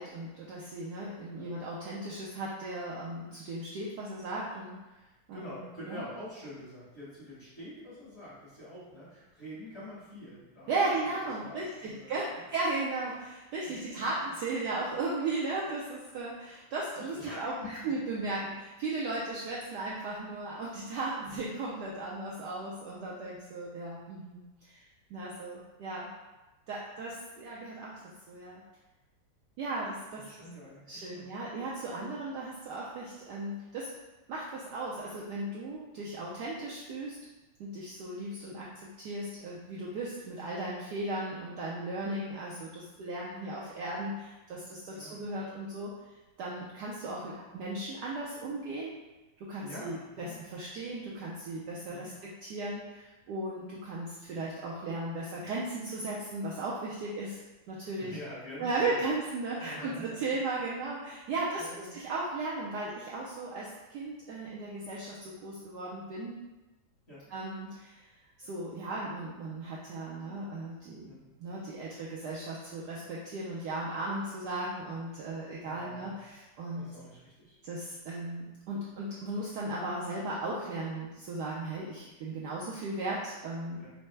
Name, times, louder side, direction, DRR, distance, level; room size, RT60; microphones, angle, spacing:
voice 1, 0.0-4.8 5.3-6.0 10.7-17.5 17.8-24.8 25.1-26.1 26.7-28.0 28.3-28.6 29.6-30.3 30.9-33.9 34.3-37.2 37.6-45.9 46.4-48.9 49.4-57.4 57.7-58.2 58.6-66.4 67.3-68.1 68.4-71.1 71.4-76.9 77.6-83.9, right 2 dB, 75° right, -5 dB, 1.0 m, -36 dB
voice 2, 5.3-12.4 13.6-14.0 17.0-17.9 21.2-21.4 30.1-31.3 44.9-45.2 49.6-50.5 51.9-52.2 58.0-59.0 59.6-60.6 61.6-61.9 67.1-67.3 71.1-71.3 75.6-76.2 76.7-77.6 83.8-83.9, equal, 35° left, -9 dB, 1.4 m, -46 dB
5.5 x 2.0 x 3.2 m, 1.1 s
omnidirectional pair, 2.2 m